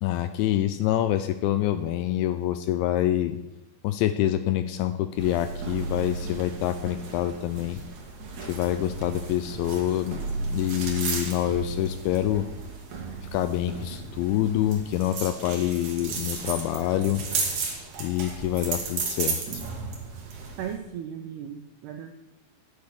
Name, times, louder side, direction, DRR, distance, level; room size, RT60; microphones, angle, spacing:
voice 1, 0.0-3.4 3.8-7.8 8.4-12.5 13.3-17.2 18.0-19.6, left 12 dB, 85° left, 11 dB, 2.8 m, -26 dB
sound 1, 5.2-20.7, right 4 dB, 50° right, 2.8 m, -34 dB
voice 2, 20.6-22.1, right 9 dB, 85° right, 6 dB, 2.3 m, -36 dB
12.5 x 9.6 x 6.5 m, 0.95 s
omnidirectional pair, 5.6 m